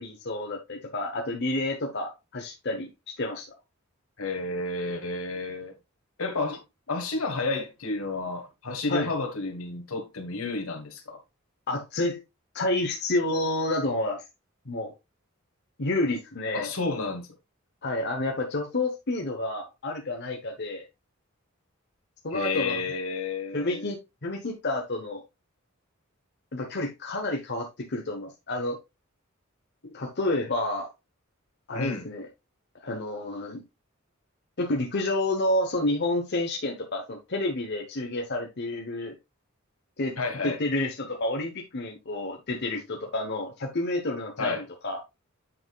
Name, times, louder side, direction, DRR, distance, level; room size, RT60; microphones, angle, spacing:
voice 1, 0.0-2.9 3.2-3.5 8.9-9.1 11.7-12.2 12.5-14.2 14.7-14.9 15.8-16.7 17.8-20.8 22.2-22.8 23.5-25.2 26.5-28.8 29.9-30.9 31.7-32.3 32.8-33.6 34.6-39.2 40.0-40.1 40.4-45.0, left 2 dB, 55° left, 1.1 m, -29 dB
voice 2, 4.2-5.7 6.2-6.6 6.9-11.2 16.5-17.3 22.3-23.9 31.7-32.0 40.2-40.6 44.4-44.6, left 3 dB, 75° left, 1.6 m, -31 dB
7.8 x 5.8 x 2.4 m
head